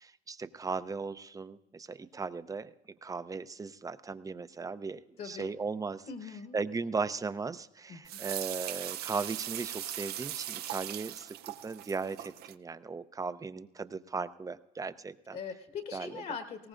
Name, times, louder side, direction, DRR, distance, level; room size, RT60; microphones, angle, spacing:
voice 1, 0.0-2.7 3.0-6.1 6.5-11.4 11.6-15.4 15.9-16.2, right 4 dB, 20° right, 13 dB, 0.5 m, -37 dB
voice 2, 5.2-5.5 6.1-6.6 7.9-8.2 15.3-16.7, left 6 dB, 55° left, 5 dB, 1.4 m, -41 dB
sound 1, 8.1-12.5, right 12 dB, 70° right, 0.6 m, -39 dB
20.0 x 17.5 x 2.5 m, 0.90 s
cardioid pair, 110°, 17 cm